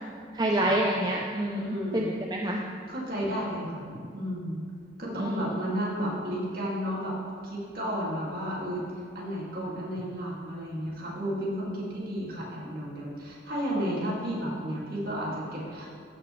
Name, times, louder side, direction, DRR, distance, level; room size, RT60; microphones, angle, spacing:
voice 1, 0.3-2.6 5.2-5.4, right 1 dB, 20° right, -1 dB, 0.4 m, -27 dB
voice 2, 1.6-2.1 2.9-3.9 4.1-4.6 5.0-7.2 7.4-15.9, equal, 55° right, -6 dB, 2.2 m, -32 dB
14.0 x 5.8 x 3.1 m, 2.2 s
head